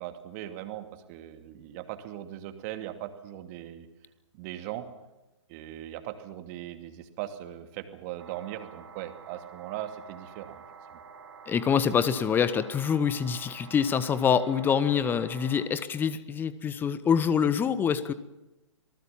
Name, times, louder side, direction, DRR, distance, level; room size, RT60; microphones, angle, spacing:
voice 1, 0.0-3.9 4.3-4.9 5.5-10.6, right 13 dB, 30° right, 8 dB, 2.5 m, -39 dB
sound 1, 8.2-15.7, right 6 dB, 60° right, 4.4 m, -48 dB
voice 2, 11.5-18.1, left 7 dB, 10° left, 15 dB, 1.1 m, -25 dB
26.5 x 19.5 x 7.3 m, 0.97 s
figure-of-eight pair, 120°, 16 cm